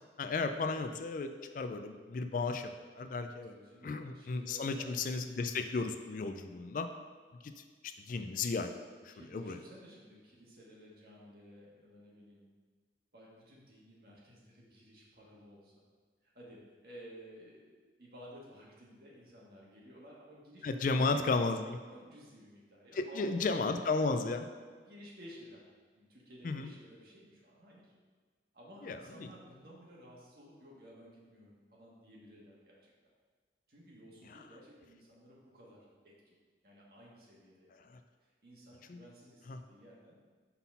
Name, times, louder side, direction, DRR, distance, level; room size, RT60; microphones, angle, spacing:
voice 1, 0.2-2.7 3.0-3.5 3.8-6.9 7.4-8.7 9.0-9.6 20.6-21.8 22.9-24.5 26.4-26.7 28.8-29.3 37.9-38.0 38.9-39.0 39.5-39.6, left 3 dB, 45° left, 8 dB, 0.3 m, -34 dB
voice 2, 3.4-4.9 9.1-12.5 13.1-15.7 16.2-20.6 20.9-21.4 21.9-23.7 24.7-25.6 26.0-27.9 28.5-32.9 33.7-36.3 36.6-37.7 38.2-40.2, equal, 55° right, -4 dB, 1.6 m, -55 dB
5.6 x 4.1 x 5.5 m, 1.5 s
head